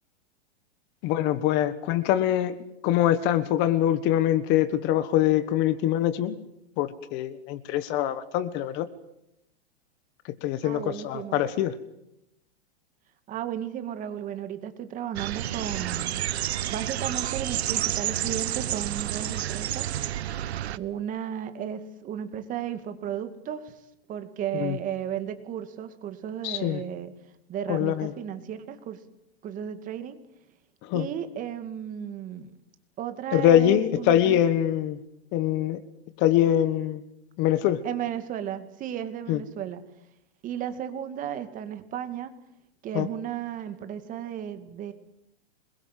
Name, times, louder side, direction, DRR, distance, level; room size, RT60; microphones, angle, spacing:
voice 1, 1.0-2.6 2.8-6.4 6.8-8.9 10.4-11.8 24.5-24.8 26.4-26.8 27.7-28.1 30.8-31.1 33.3-35.0 35.3-35.8 36.2-37.0 37.4-37.8 39.3-39.4 42.9-43.1, left 11 dB, 35° left, 14 dB, 1.5 m, -24 dB
voice 2, 10.6-11.4 13.3-16.3 16.7-19.9 20.8-23.7 24.1-27.1 27.5-29.0 29.4-30.2 30.9-32.5 33.0-34.4 37.8-39.8 40.4-42.3 42.8-44.9, right 9 dB, 25° right, 9 dB, 2.3 m, -34 dB
sound 1, 15.2-20.8, right 12 dB, 80° right, 1.1 m, -30 dB
27.5 x 22.0 x 7.6 m, 0.82 s
supercardioid pair, 150°, 32 cm